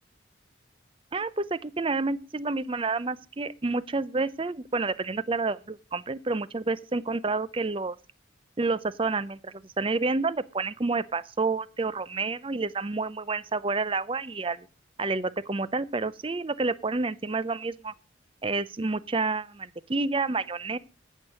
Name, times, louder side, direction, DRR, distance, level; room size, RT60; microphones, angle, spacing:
voice 1, 1.1-8.0 8.6-14.7 15.0-17.9 18.4-20.8, right 3 dB, 25° right, 0.5 m, -29 dB
15.5 x 6.5 x 6.3 m
head